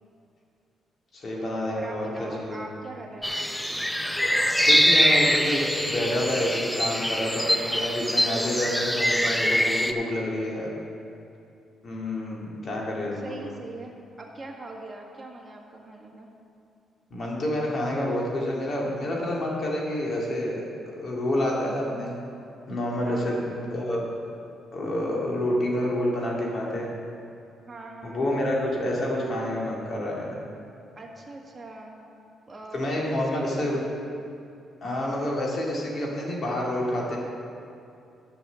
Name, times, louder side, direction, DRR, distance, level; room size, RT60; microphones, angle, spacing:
voice 1, 1.1-2.6 4.6-10.7 11.8-13.5 17.1-22.1 22.7-24.0 24.7-26.9 28.0-30.4 32.7-33.8 34.8-37.2, left 1 dB, 45° left, -3 dB, 2.2 m, -28 dB
voice 2, 1.7-3.4 13.1-16.3 23.0-23.6 27.7-28.4 30.9-32.1 32.5-34.0, right 2 dB, 25° right, -1 dB, 1.7 m, -42 dB
sound 1, 3.2-9.9, equal, 5° left, 0.5 m, -23 dB
8.7 x 6.3 x 7.0 m, 2.6 s
cardioid pair, 90°, 0 cm